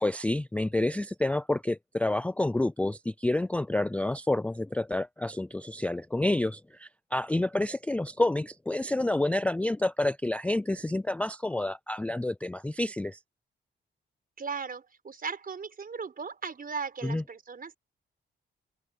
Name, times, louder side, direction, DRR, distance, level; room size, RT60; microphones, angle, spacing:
voice 1, 0.0-13.2 17.0-17.2, left 2 dB, 5° left, 0.3 m, -29 dB
voice 2, 14.4-17.8, right 5 dB, 45° right, 4.9 m, -37 dB
open air
wide cardioid pair, 115°, 20 cm